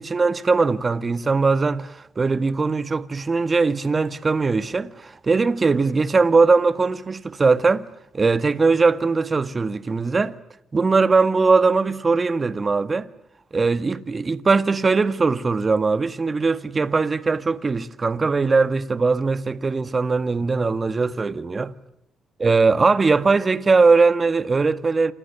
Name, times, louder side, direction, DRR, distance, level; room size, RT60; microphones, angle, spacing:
voice 1, 0.0-7.9 8.1-10.3 10.7-13.1 13.5-21.7 22.4-25.1, right 4 dB, 35° right, 1.8 m, -20 dB
29.0 x 28.0 x 7.1 m
supercardioid pair, 55°, 0 cm